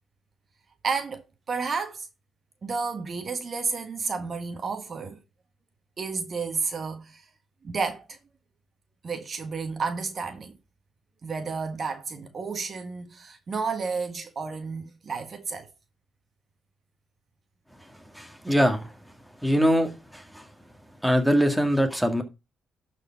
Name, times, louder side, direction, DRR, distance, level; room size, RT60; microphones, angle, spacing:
voice 1, 0.8-2.1 2.6-5.2 6.0-7.2 7.6-8.2 9.0-10.6 11.2-15.7, right 4 dB, 45° right, 1.5 m, -31 dB
voice 2, 18.1-18.9 19.4-20.4 21.0-22.2, equal, ahead, 1.9 m, -23 dB
12.0 x 4.6 x 4.7 m
cardioid pair, 90°, 0 cm